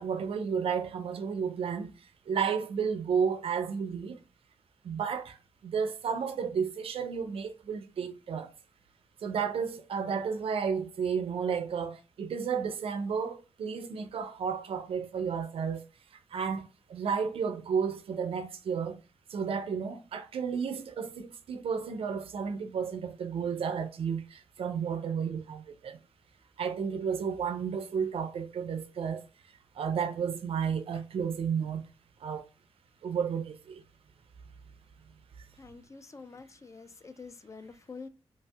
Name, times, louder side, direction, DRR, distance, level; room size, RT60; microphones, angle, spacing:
voice 1, 0.0-1.9 2.3-4.2 4.8-8.5 9.2-15.8 16.3-19.0 19.3-26.0 26.6-29.3 29.8-31.8 32.2-32.5 33.0-33.8, right 6 dB, 70° right, 0.4 m, -32 dB
voice 2, 35.6-38.1, left 4 dB, 30° left, 0.3 m, -47 dB
3.0 x 2.6 x 2.3 m
cardioid pair, 60°, 10 cm